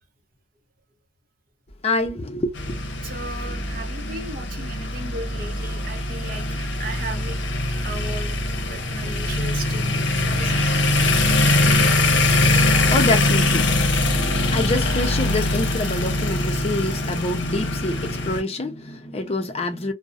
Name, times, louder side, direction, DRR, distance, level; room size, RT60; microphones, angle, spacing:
voice 1, 1.8-2.8 12.9-19.9, left 2 dB, 35° left, 0.5 m, -26 dB
sound 1, 2.6-18.4, left 2 dB, 75° left, 0.6 m, -22 dB
voice 2, 3.0-7.4 7.8-8.3 8.6-10.7, right 2 dB, 50° right, 0.6 m, -36 dB
2.4 x 2.0 x 2.5 m
head